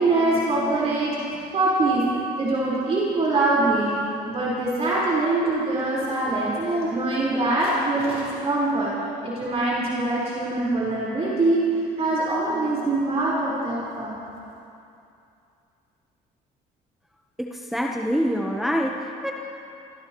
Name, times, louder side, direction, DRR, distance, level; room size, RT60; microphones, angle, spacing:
voice 1, 0.0-2.0 2.4-4.0 4.3-8.9 9.2-11.6 12.0-14.2, right 2 dB, 35° right, -7 dB, 4.5 m, -23 dB
voice 2, 17.4-19.3, equal, ahead, -1 dB, 1.1 m, -25 dB
27.5 x 15.5 x 3.1 m, 2.7 s
cardioid pair, 110°, 17 cm